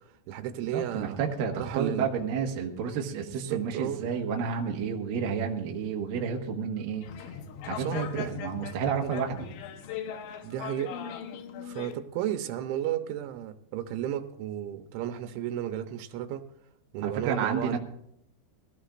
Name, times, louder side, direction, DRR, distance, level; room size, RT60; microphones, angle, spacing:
voice 1, 0.0-1.2 1.6-2.1 3.4-4.1 7.8-8.3 9.0-9.1 10.4-11.0 11.6-16.4 16.9-17.8, right 11 dB, 90° right, 3.2 m, -33 dB
voice 2, 0.7-7.0 7.7-9.5 17.0-17.8, right 6 dB, 60° right, 2.7 m, -30 dB
sound 1, 7.0-11.9, left 7 dB, 80° left, 3.3 m, -39 dB
22.0 x 16.0 x 2.5 m
omnidirectional pair, 5.2 m